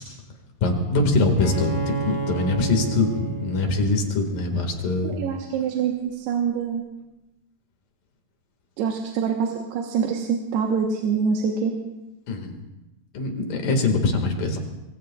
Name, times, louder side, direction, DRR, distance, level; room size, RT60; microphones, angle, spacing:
voice 1, 0.6-5.2 12.3-12.6 13.1-14.6, left 3 dB, 60° left, 3 dB, 3.5 m, -23 dB
Bowed string instrument, 1.4-5.0, right 4 dB, 20° left, 4.0 m, -31 dB
voice 2, 5.0-6.8 8.8-11.7, right 6 dB, 85° right, 1 dB, 3.2 m, -25 dB
25.0 x 23.0 x 2.4 m, 0.99 s
omnidirectional pair, 4.6 m